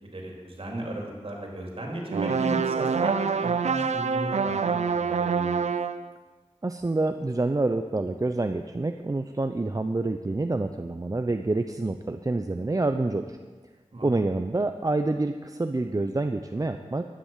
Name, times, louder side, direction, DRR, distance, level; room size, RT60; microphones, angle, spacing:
voice 1, 0.0-5.6 13.9-14.2, right 1 dB, 55° right, 0 dB, 3.6 m, -35 dB
sound 1, 2.1-6.1, right 5 dB, 90° right, 0.5 m, -26 dB
voice 2, 6.6-13.4 14.0-17.1, right 2 dB, 30° right, 7 dB, 0.6 m, -27 dB
11.5 x 10.0 x 7.5 m, 1.4 s
wide cardioid pair, 50°, 11 cm